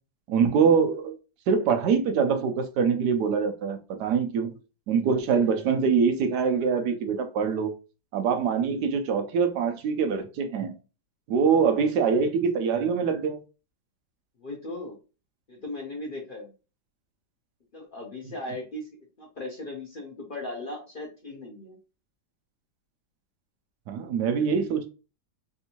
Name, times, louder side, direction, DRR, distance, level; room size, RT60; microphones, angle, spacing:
voice 1, 0.3-1.1 1.5-4.6 4.9-7.7 8.1-10.7 11.3-13.4 23.9-24.9, right 6 dB, 80° right, 1.2 m, -24 dB
voice 2, 11.5-11.8 14.4-15.0 15.5-16.5 17.7-18.9 19.2-21.8, left 2 dB, 45° left, 0.7 m, -38 dB
3.5 x 2.6 x 2.8 m
omnidirectional pair, 1.8 m